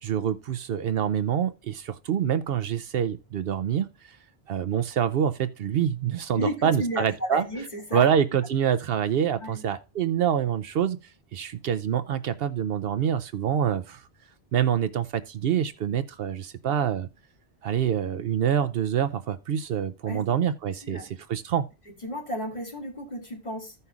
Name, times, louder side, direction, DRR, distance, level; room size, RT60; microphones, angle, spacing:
voice 1, 0.0-3.9 4.5-7.4 7.9-11.0 11.3-14.0 14.5-17.1 17.6-21.0 21.3-21.7, right 9 dB, 70° right, 0.8 m, -26 dB
voice 2, 6.4-8.1 9.4-9.6 20.0-20.2 20.8-21.1 21.9-23.8, equal, 40° left, 2.2 m, -33 dB
15.5 x 5.5 x 2.3 m
omnidirectional pair, 1.1 m